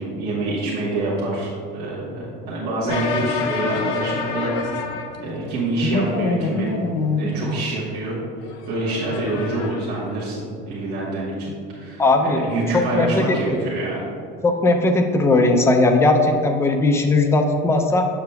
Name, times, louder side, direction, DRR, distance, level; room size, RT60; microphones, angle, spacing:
voice 1, 0.0-6.8 7.2-8.2 8.7-14.1, right 2 dB, 45° right, -7 dB, 1.2 m, -26 dB
sound 1, 2.9-5.5 5.8-7.6 8.4-10.1, left 3 dB, 85° left, 0.6 m, -26 dB
voice 2, 12.0-12.4 12.7-13.7 14.4-18.1, left 2 dB, 10° left, 4 dB, 0.4 m, -18 dB
6.9 x 6.7 x 2.2 m, 2.3 s
cardioid pair, 155°, 21 cm